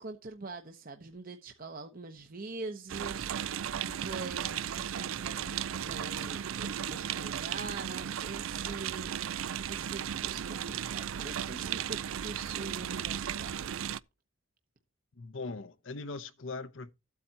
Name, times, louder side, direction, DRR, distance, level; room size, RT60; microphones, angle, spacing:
voice 1, 0.0-9.1 9.6-13.6, right 3 dB, 45° right, 1.0 m, -44 dB
sound 1, 2.9-14.0, right 9 dB, 85° right, 0.4 m, -35 dB
voice 2, 15.2-16.9, left 3 dB, 70° left, 0.8 m, -40 dB
14.0 x 8.4 x 2.8 m
head